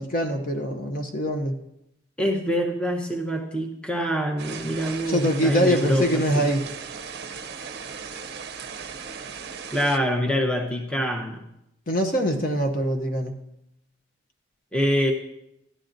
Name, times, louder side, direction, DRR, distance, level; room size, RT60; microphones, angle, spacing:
voice 1, 0.0-1.6 5.1-6.6 11.9-13.3, equal, 45° left, 4 dB, 0.7 m, -24 dB
voice 2, 2.2-6.5 9.7-11.4 14.7-15.1, equal, 5° left, 2 dB, 0.7 m, -25 dB
sound 1, 4.4-10.0, right 6 dB, 55° right, 0.6 m, -37 dB
14.0 x 11.0 x 2.6 m, 0.85 s
head